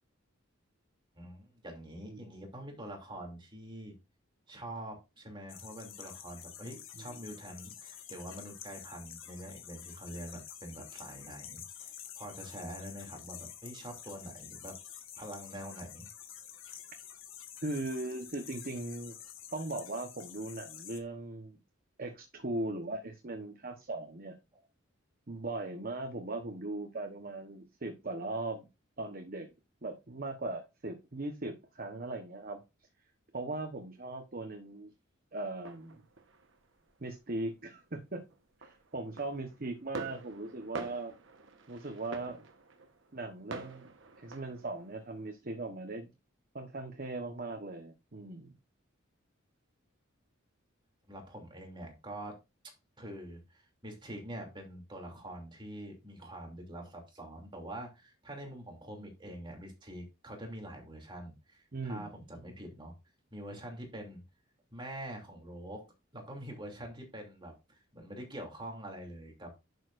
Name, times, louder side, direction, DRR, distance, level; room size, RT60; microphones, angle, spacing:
voice 1, 1.1-3.9 4.5-14.8 15.2-16.1 16.6-16.8 24.5-24.6 51.1-52.4 53.0-62.9 63.3-64.2 64.7-65.8 66.1-69.6, right 1 dB, 25° right, 2 dB, 2.8 m, -45 dB
sound 1, 5.5-21.0, left 10 dB, 75° left, 1.6 m, -49 dB
voice 2, 17.6-19.2 19.5-21.6 22.0-24.4 25.3-28.7 29.0-29.5 29.8-32.6 33.3-34.9 35.3-36.0 37.0-38.2 38.6-41.1 41.7-42.5 43.1-43.9 44.2-46.1 46.5-48.5 61.7-62.1, right 2 dB, 45° right, 5 dB, 1.1 m, -39 dB
sound 2, 35.6-36.9 37.3-37.9 38.1-45.3, right 3 dB, 65° right, 1.2 m, -47 dB
11.0 x 6.6 x 2.6 m, 0.26 s
head